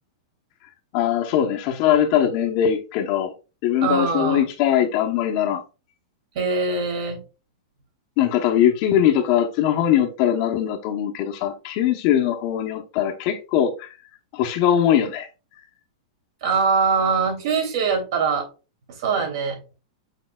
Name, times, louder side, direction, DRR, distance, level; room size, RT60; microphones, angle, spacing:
voice 1, 0.9-3.3 3.6-5.6 8.2-13.9 14.3-15.3, left 10 dB, 35° left, 0.9 m, -21 dB
voice 2, 3.8-4.4 6.3-7.2 16.4-18.5 19.0-19.6, right 5 dB, 50° right, 3.2 m, -22 dB
7.1 x 6.3 x 2.3 m
supercardioid pair, 165°, 3 cm